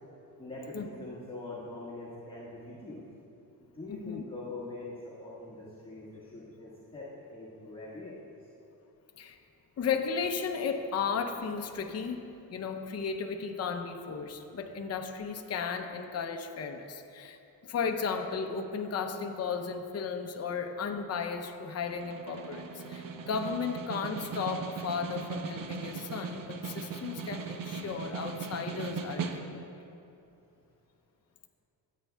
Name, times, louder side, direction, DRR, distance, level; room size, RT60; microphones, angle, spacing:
voice 1, 0.4-3.0 3.7-8.3, left 2 dB, 15° left, -10 dB, 1.5 m, -43 dB
voice 2, 3.9-4.2 9.2-9.4 9.8-29.7, left 5 dB, 35° left, 5 dB, 0.6 m, -35 dB
Snare drum, 21.8-29.8, right 5 dB, 55° right, 0.7 m, -39 dB
14.5 x 8.3 x 2.3 m, 2.7 s
cardioid pair, 110°, 41 cm